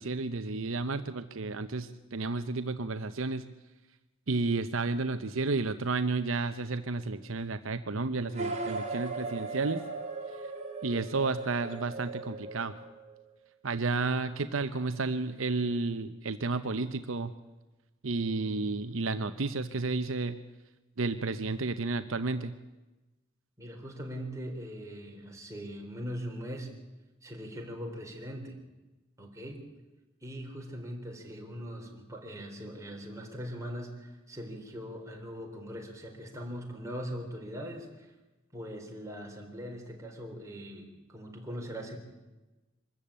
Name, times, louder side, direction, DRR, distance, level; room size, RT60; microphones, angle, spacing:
voice 1, 0.0-3.4 4.3-9.8 10.4-10.5 10.8-12.7 13.6-17.3 18.0-20.4 21.0-22.5, right 3 dB, 70° right, 10 dB, 0.8 m, -32 dB
sound 1, 8.3-13.2, right 3 dB, 35° right, 3.3 m, -38 dB
voice 2, 23.6-26.7 27.2-28.6 29.2-29.8 30.2-38.1 38.5-42.0, equal, 15° right, 1 dB, 3.8 m, -41 dB
24.0 x 13.5 x 8.8 m, 1.1 s
head